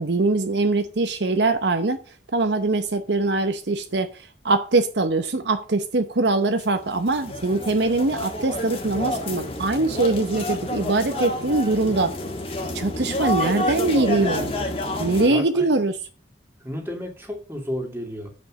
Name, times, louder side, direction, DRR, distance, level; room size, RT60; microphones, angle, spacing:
voice 1, 0.0-2.0 2.3-4.1 4.4-12.1 12.7-14.5 15.0-16.0, right 3 dB, 75° right, 0.9 m, -22 dB
sound 1, 6.6-15.3, left 1 dB, 30° left, 1.8 m, -29 dB
voice 2, 15.3-15.7 16.6-18.3, equal, 10° right, 2.5 m, -32 dB
8.3 x 5.4 x 6.3 m
head